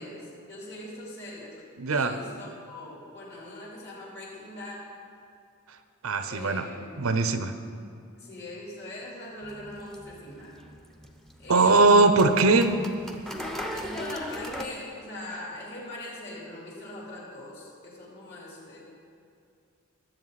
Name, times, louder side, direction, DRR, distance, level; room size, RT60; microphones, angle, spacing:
voice 1, 0.0-1.6 1.9-4.9 6.3-6.9 8.2-10.5 11.4-12.1 13.7-18.8, left 1 dB, 50° left, -5 dB, 3.5 m, -41 dB
voice 2, 1.8-2.1 6.0-6.7 7.0-7.5 11.5-12.7, right 3 dB, 85° right, 9 dB, 0.7 m, -20 dB
sound 1, 9.4-14.7, equal, ahead, 0.7 m, -39 dB
19.0 x 7.9 x 4.1 m, 2.5 s
head